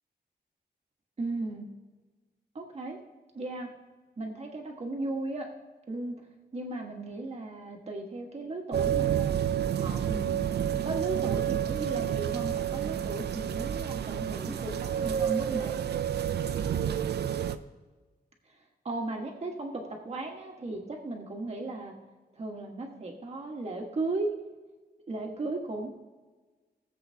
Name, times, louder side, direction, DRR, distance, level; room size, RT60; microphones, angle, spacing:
voice 1, 1.2-1.7 2.5-3.0 3.3-3.7 4.2-5.5 5.9-6.2 6.5-9.4 9.8-15.8 18.8-21.9 22.3-24.3 25.1-25.9, right 2 dB, 40° right, 1 dB, 1.6 m, -36 dB
sound 1, 8.7-17.6, right 9 dB, 80° right, 0.5 m, -29 dB
19.5 x 7.7 x 2.9 m, 1.3 s
wide cardioid pair, 155°, 17 cm